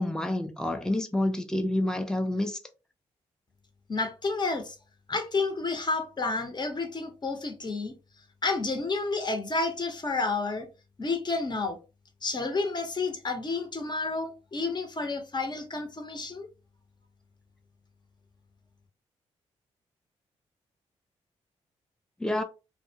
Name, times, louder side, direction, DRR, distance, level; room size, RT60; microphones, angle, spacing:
voice 1, 0.0-2.6 22.2-22.4, left 1 dB, 5° left, 0.6 m, -28 dB
voice 2, 3.9-4.8 5.1-7.9 8.4-10.7 11.0-11.8 12.2-16.5, left 3 dB, 35° left, 0.9 m, -30 dB
2.3 x 2.2 x 2.7 m
supercardioid pair, 50°, 13 cm